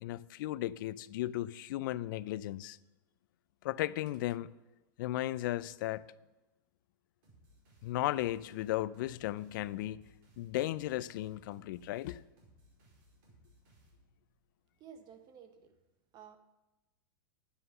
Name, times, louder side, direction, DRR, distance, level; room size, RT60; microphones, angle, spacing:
voice 1, 0.0-2.8 3.6-4.5 5.0-6.1 7.8-10.0 10.4-12.2, left 15 dB, 65° left, 0.4 m, -35 dB
sound 1, 7.2-14.4, right 1 dB, 55° right, 5.0 m, -64 dB
voice 2, 14.8-15.7 16.1-16.4, right 7 dB, 40° right, 1.1 m, -53 dB
9.9 x 8.0 x 6.7 m
hypercardioid pair, 120°, 12 cm